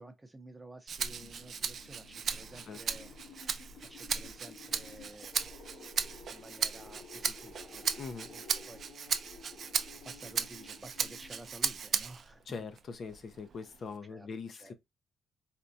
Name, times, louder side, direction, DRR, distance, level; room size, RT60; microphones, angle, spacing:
voice 1, 0.0-3.1 3.8-5.4 6.3-8.0 8.2-8.8 10.0-12.7 14.1-14.7, right 2 dB, 15° right, 0.6 m, -52 dB
sound 1, 0.9-12.0, left 5 dB, 85° left, 1.1 m, -54 dB
Rattle (instrument), 0.9-12.3 12.8-14.0, right 6 dB, 55° right, 0.4 m, -36 dB
voice 2, 8.0-8.3 12.5-14.7, left 5 dB, 50° left, 0.5 m, -42 dB
4.2 x 2.2 x 2.6 m
cardioid pair, 90°, 0 cm